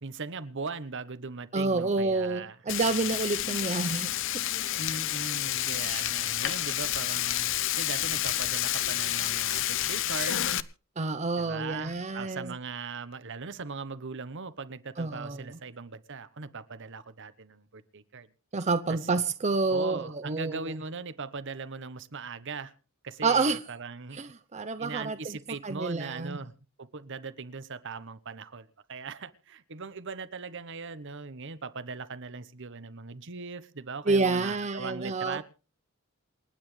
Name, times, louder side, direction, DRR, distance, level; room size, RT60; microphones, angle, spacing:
voice 1, 0.0-2.6 4.8-10.6 11.4-18.3 18.9-19.0 19.7-22.7 23.0-24.2 24.8-26.5 26.8-35.5, right 4 dB, 60° right, 13 dB, 1.1 m, -39 dB
voice 2, 1.5-4.1 11.0-12.5 15.0-15.4 18.5-20.7 23.2-23.6 24.1-26.4 34.1-35.5, right 3 dB, 35° right, 9 dB, 0.7 m, -29 dB
Frying (food), 2.7-10.6, left 13 dB, 65° left, 0.7 m, -29 dB
28.0 x 9.5 x 3.3 m, 0.34 s
head